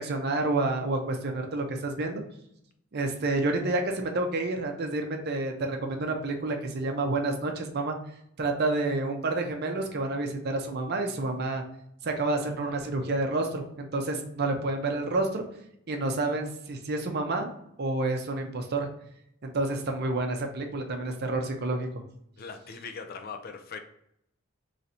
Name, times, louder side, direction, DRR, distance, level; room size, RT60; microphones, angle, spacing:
voice 1, 0.0-2.2 2.9-8.0 8.4-11.6 12.0-15.4 15.9-17.5 17.8-18.9 19.4-21.9, right 2 dB, 50° right, 4 dB, 0.6 m, -29 dB
voice 2, 22.4-23.8, left 5 dB, 45° left, 7 dB, 0.4 m, -40 dB
3.2 x 2.6 x 4.2 m, 0.74 s
head